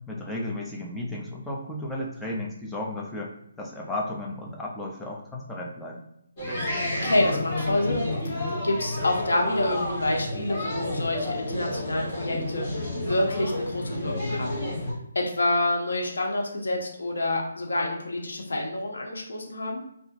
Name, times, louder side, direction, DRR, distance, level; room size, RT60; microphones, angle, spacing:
voice 1, 0.1-6.0, left 1 dB, 5° left, -3 dB, 0.3 m, -34 dB
sound 1, 6.4-14.9, left 1 dB, 20° left, 1.0 m, -30 dB
voice 2, 7.0-8.1 8.6-14.7 15.1-19.8, left 1 dB, 85° left, 0 dB, 0.6 m, -27 dB
2.8 x 2.4 x 2.5 m, 0.76 s
hypercardioid pair, 165°, 0 cm